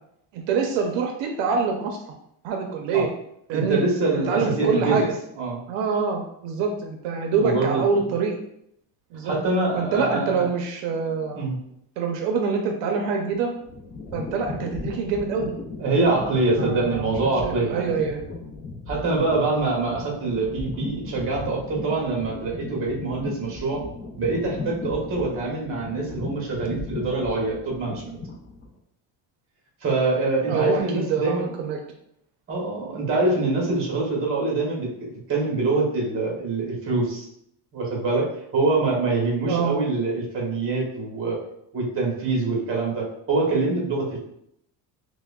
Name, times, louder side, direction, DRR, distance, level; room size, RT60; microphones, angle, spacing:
voice 1, 0.3-2.0 2.4-3.1 3.5-3.8 4.1-5.1 5.7-8.4 9.1-9.3 9.7-11.4 12.0-13.5 14.1-15.5 15.9-16.2 16.6-17.1 17.4-18.2 30.5-31.8 39.4-39.8, right 5 dB, 75° right, 3 dB, 0.7 m, -25 dB
voice 2, 3.5-5.0 5.4-5.6 7.3-7.8 9.2-10.5 11.3-11.6 15.8-17.9 18.9-23.8 24.2-28.2 29.8-31.5 32.5-34.9 35.3-37.3 37.7-38.3 38.5-41.4 41.7-44.2, right 3 dB, 30° right, -2 dB, 1.0 m, -24 dB
sound 1, 13.3-28.7, left 3 dB, 25° left, 0.4 m, -36 dB
5.5 x 2.2 x 2.3 m, 0.74 s
cardioid pair, 170°, 44 cm